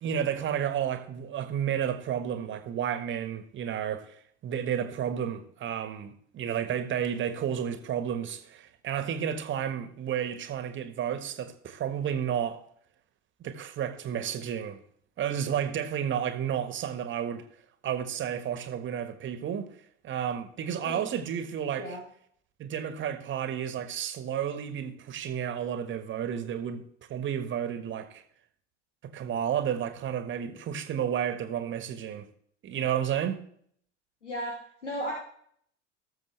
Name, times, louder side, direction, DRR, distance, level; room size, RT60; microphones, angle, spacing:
voice 1, 0.0-4.2 4.4-12.6 13.4-14.8 15.2-17.4 17.8-19.7 20.0-22.0 22.6-28.2 29.0-32.3 32.6-33.4, right 9 dB, 35° right, 1.5 m, -31 dB
voice 2, 34.2-34.5 34.8-35.1, equal, 80° left, 2.4 m, -34 dB
18.5 x 7.3 x 3.4 m
figure-of-eight pair, 70°, 36 cm